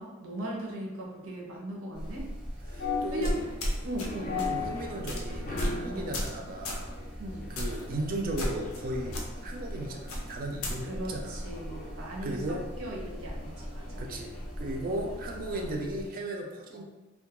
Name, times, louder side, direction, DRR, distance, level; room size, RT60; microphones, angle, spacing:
voice 1, 0.0-2.3 3.1-3.4 3.8-4.6 5.9-6.1 7.2-7.5 10.9-12.4 12.8-14.0 14.8-15.0 16.7-16.8, right 1 dB, 90° right, -3 dB, 0.6 m, -38 dB
sound 1, 1.9-16.1, equal, 5° right, 0.6 m, -42 dB
sound 2, 2.6-15.9, left 4 dB, 40° left, 0.4 m, -40 dB
voice 2, 2.7-3.4 4.5-6.9 7.5-11.4 12.2-12.6 14.0-16.8, right 1 dB, 45° right, 1 dB, 0.3 m, -36 dB
sound 3, 3.2-4.1 4.4-4.6 5.1-5.2 5.6-5.8 6.1-6.4 6.6-6.8 7.6-7.8 8.4-8.8 9.1-9.2 10.1-10.7, equal, 85° left, 0.5 m, -32 dB
2.2 x 2.1 x 2.9 m, 1.1 s
head